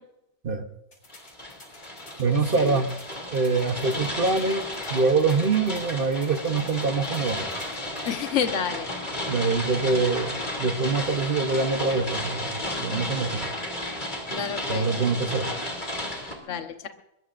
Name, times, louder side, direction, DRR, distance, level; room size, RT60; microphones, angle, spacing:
sound 1, 0.9-8.2, left 2 dB, 85° left, 7.3 m, -51 dB
sound 2, 1.1-16.3, left 1 dB, 30° left, 3.0 m, -33 dB
voice 1, 2.2-2.9 3.3-7.5 9.3-13.5 14.7-15.5, right 4 dB, 40° right, 7 dB, 1.0 m, -25 dB
voice 2, 8.0-8.9 14.3-14.9 16.5-16.9, left 7 dB, 50° left, 6 dB, 1.4 m, -29 dB
22.5 x 22.0 x 2.6 m, 0.87 s
omnidirectional pair, 1.7 m